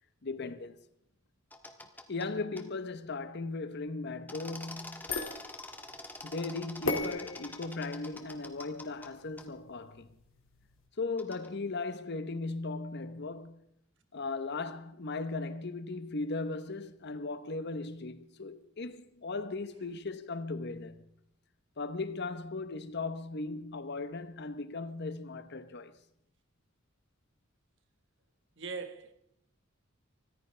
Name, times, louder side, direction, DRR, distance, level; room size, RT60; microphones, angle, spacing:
voice 1, 0.2-0.8 2.1-5.1 6.2-10.2 11.0-13.6 14.1-21.1 21.8-26.0, left 3 dB, 55° left, 0.9 m, -37 dB
sound 1, 1.5-2.3 2.6-2.7 4.3-9.1 9.4-9.5 11.2-11.5, left 2 dB, 10° left, 1.4 m, -46 dB
sound 2, 4.6-10.9, left 3 dB, 85° left, 2.3 m, -40 dB
voice 2, 28.6-29.1, right 4 dB, 65° right, 1.6 m, -41 dB
25.0 x 14.0 x 3.3 m
head